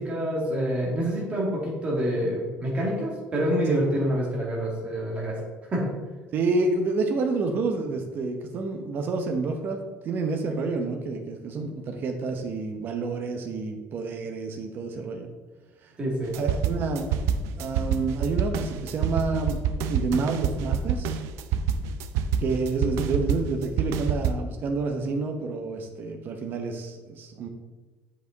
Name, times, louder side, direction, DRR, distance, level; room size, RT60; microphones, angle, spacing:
voice 1, 0.1-5.3 5.7-6.0 16.0-16.3, equal, 25° right, -3 dB, 2.3 m, -27 dB
voice 2, 6.3-15.3 15.8-15.9 16.3-17.1 17.6-19.6 19.9-21.2 22.4-27.5, right 3 dB, 45° right, 4 dB, 0.9 m, -29 dB
sound 1, 16.3-24.3, right 7 dB, 90° right, 0.5 m, -27 dB
7.5 x 5.4 x 3.9 m, 1.2 s
cardioid pair, 155°, 5 cm